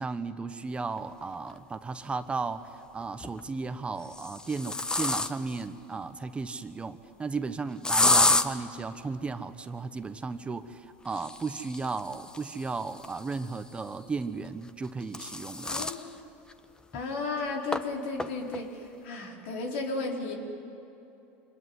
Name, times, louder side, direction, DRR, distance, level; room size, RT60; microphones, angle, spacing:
voice 1, 0.0-15.9, right 4 dB, 20° right, 10 dB, 1.1 m, -35 dB
sound 1, 1.5-1.6 3.0-3.4 4.0-5.6 7.8-8.5 11.0-13.7 14.7-16.0 16.5-16.6 16.9-17.0 17.7-17.8 18.2-18.6, left 2 dB, 15° left, 1.1 m, -29 dB
voice 2, 15.7-16.1 16.9-20.3, left 3 dB, 80° left, 1 dB, 4.4 m, -34 dB
25.5 x 21.5 x 9.7 m, 2.9 s
supercardioid pair, 105°, 6 cm